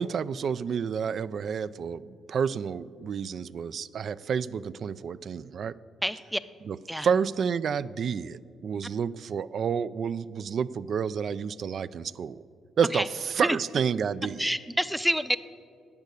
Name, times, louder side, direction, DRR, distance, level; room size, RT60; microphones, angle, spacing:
voice 1, 0.0-5.8 6.7-6.8 7.0-12.4 12.8-14.5, right 6 dB, 55° right, 16 dB, 0.3 m, -29 dB
voice 2, 6.0-6.4 6.9-7.1 12.9-13.1 13.4-13.6 14.4-15.4, equal, ahead, 14 dB, 0.5 m, -27 dB
10.5 x 8.3 x 8.3 m, 2.3 s
cardioid pair, 90°, 0 cm